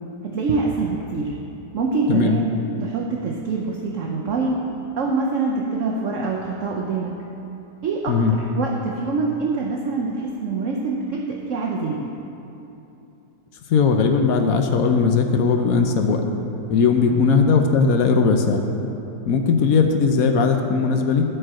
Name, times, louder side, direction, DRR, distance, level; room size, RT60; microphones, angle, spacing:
voice 1, 0.2-1.4 1.7-4.6 5.0-7.1 7.8-12.1 17.1-17.2, right 3 dB, 60° right, 0 dB, 0.9 m, -25 dB
voice 2, 13.7-16.2 16.7-18.6 19.2-21.2, left 5 dB, 65° left, 4 dB, 1.0 m, -18 dB
11.0 x 4.6 x 7.5 m, 2.9 s
omnidirectional pair, 1.8 m